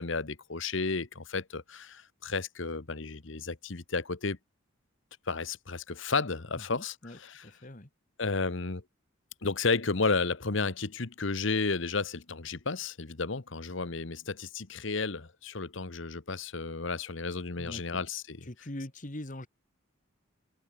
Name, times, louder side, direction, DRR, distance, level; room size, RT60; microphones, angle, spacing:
voice 1, 0.0-4.4 5.3-7.5 8.2-8.8 9.4-18.5, left 4 dB, 65° left, 1.2 m, -32 dB
voice 2, 6.5-7.9 17.6-18.0 18.5-19.5, left 1 dB, 40° left, 1.9 m, -42 dB
head